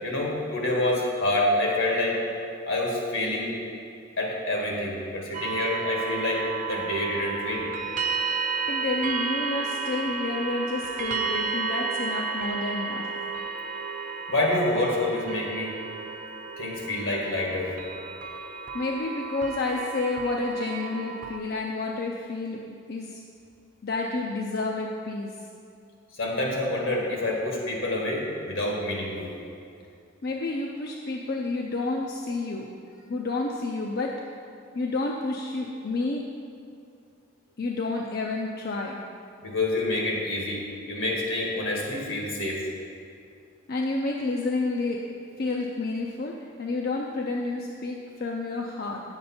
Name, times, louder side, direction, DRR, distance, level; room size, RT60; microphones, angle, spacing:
voice 1, 0.0-2.2 2.7-3.5 4.2-7.7 14.3-15.8 16.6-17.7 26.2-29.3 39.4-42.6, left 1 dB, 75° left, -2 dB, 1.8 m, -27 dB
sound 1, 5.3-21.4, right 5 dB, 40° right, 0.5 m, -32 dB
voice 2, 8.7-13.1 18.7-23.2 23.8-25.4 30.2-32.7 33.1-34.2 34.7-36.3 37.6-39.0 43.7-45.0 45.4-49.0, left 3 dB, 50° left, -1 dB, 0.5 m, -30 dB
8.6 x 6.9 x 4.3 m, 2.5 s
head